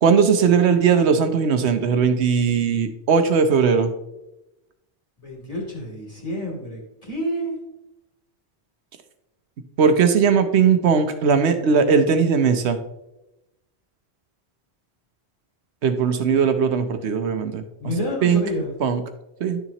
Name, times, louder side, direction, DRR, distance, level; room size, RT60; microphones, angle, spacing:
voice 1, 0.0-3.9 9.8-12.8 15.8-17.6 18.2-18.4 18.8-19.0 19.4-19.6, right 6 dB, 80° right, 8 dB, 1.0 m, -18 dB
voice 2, 5.2-7.5 17.8-18.7, equal, 35° left, -3 dB, 2.9 m, -29 dB
11.5 x 6.9 x 2.9 m, 0.92 s
omnidirectional pair, 1.1 m